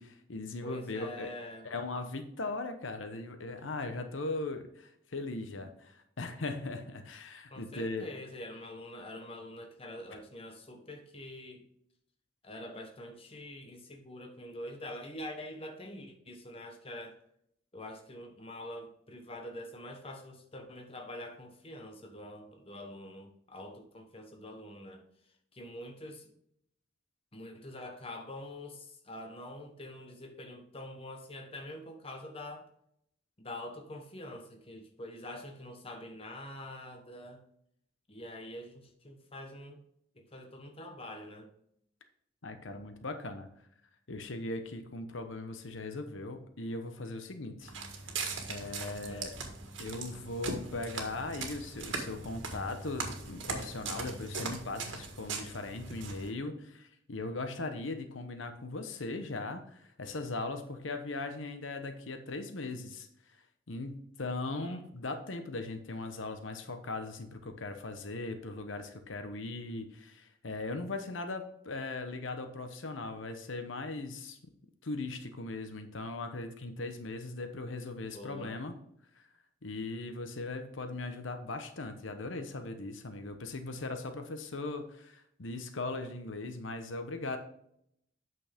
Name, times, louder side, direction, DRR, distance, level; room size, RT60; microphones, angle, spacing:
voice 1, 0.0-1.3 1.6-8.1 42.4-43.5 44.1-47.7 48.5-49.3 49.8-63.1 63.7-74.4 74.8-78.7 79.1-79.2 79.6-87.4, left 2 dB, 85° left, 7 dB, 1.0 m, -39 dB
voice 2, 0.6-1.7 7.5-11.6 12.4-17.2 17.7-25.0 25.5-26.3 27.3-32.7 33.4-37.4 38.1-39.8 40.1-41.5 48.8-49.3 64.5-64.8 78.1-78.6, left 1 dB, 30° left, 4 dB, 1.2 m, -45 dB
Walk footsteps, 47.6-56.3, right 4 dB, 80° right, 1.7 m, -40 dB
8.7 x 6.2 x 3.6 m, 0.72 s
head